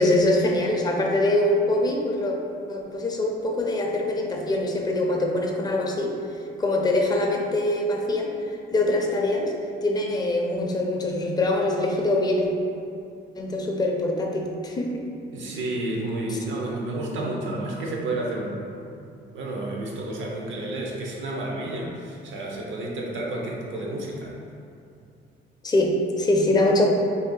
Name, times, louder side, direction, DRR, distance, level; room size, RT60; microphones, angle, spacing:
voice 1, 0.0-2.3 2.7-6.1 6.6-8.3 8.7-9.5 9.8-12.5 13.4-15.0 25.6-26.9, left 1 dB, 20° left, 0 dB, 0.4 m, -23 dB
voice 2, 15.3-18.8 19.3-24.3, right 2 dB, 75° right, -2 dB, 0.7 m, -31 dB
2.7 x 2.6 x 3.7 m, 2.5 s
cardioid pair, 90°, 20 cm